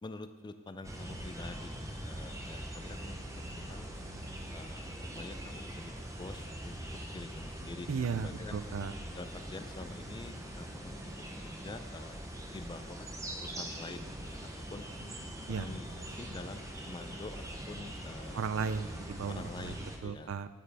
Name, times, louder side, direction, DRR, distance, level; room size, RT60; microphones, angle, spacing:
voice 1, 0.0-3.2 3.5-3.9 4.5-6.8 7.1-8.6 9.1-12.2 12.5-13.1 13.4-14.9 15.6-18.4 19.3-20.3, left 2 dB, 20° left, 9 dB, 0.4 m, -47 dB
sound 1, 0.8-20.0, right 1 dB, 15° right, 0.7 m, -43 dB
sound 2, 7.6-13.5 15.0-18.5, equal, 50° left, 1.1 m, -58 dB
voice 2, 7.9-8.9 15.5-15.7 18.3-19.7 20.0-20.5, right 5 dB, 90° right, 13 dB, 0.4 m, -35 dB
9.2 x 8.7 x 3.4 m, 1.3 s
head